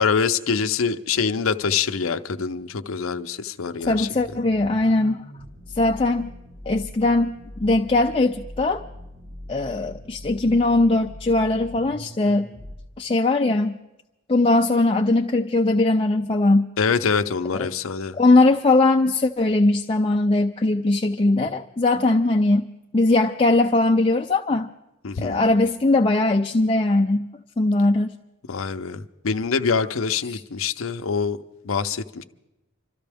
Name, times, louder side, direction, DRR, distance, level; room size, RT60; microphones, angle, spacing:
voice 1, 0.0-4.1 16.8-18.2 25.0-25.4 28.5-31.4 31.6-32.2, left 5 dB, 75° left, 0.6 m, -25 dB
sound 1, 3.8-12.8, left 1 dB, 55° right, 4.3 m, -41 dB
voice 2, 3.9-5.2 5.8-6.3 6.7-8.8 9.5-12.5 13.0-13.8 14.3-16.7 17.5-17.7 18.2-22.6 22.9-24.7 25.2-27.3 27.6-28.2 30.3-30.4, left 2 dB, 25° left, 0.4 m, -20 dB
26.0 x 13.5 x 3.5 m
head